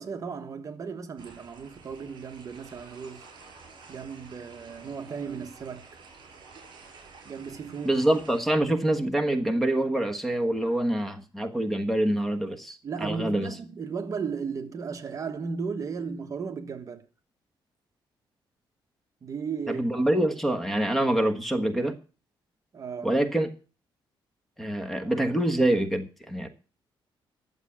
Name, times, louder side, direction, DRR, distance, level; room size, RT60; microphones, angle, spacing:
voice 1, 0.0-3.3 3.9-6.0 7.2-8.0 12.8-17.1 19.2-19.9 22.7-23.2, right 5 dB, 40° right, 1.2 m, -35 dB
sound 1, 1.2-8.4, right 4 dB, 55° right, 5.7 m, -50 dB
voice 2, 7.8-13.5 19.7-21.9 23.0-23.5 24.6-26.5, right 1 dB, ahead, 1.4 m, -25 dB
11.0 x 7.2 x 8.5 m
cardioid pair, 160°, 9 cm